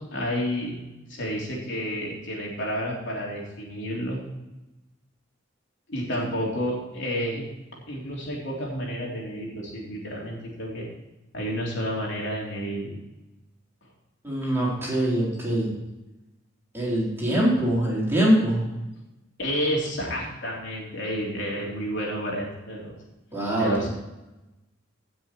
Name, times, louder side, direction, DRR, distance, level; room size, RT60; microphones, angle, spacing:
voice 1, 0.1-0.8 1.1-4.2 5.9-7.4 7.8-10.9 11.3-13.0 19.4-22.9 23.6-23.9, equal, 60° left, -3 dB, 3.6 m, -30 dB
voice 2, 14.2-15.7 16.7-18.7 23.3-23.9, right 1 dB, 10° right, -6 dB, 4.3 m, -23 dB
18.0 x 6.4 x 4.6 m, 1.0 s
head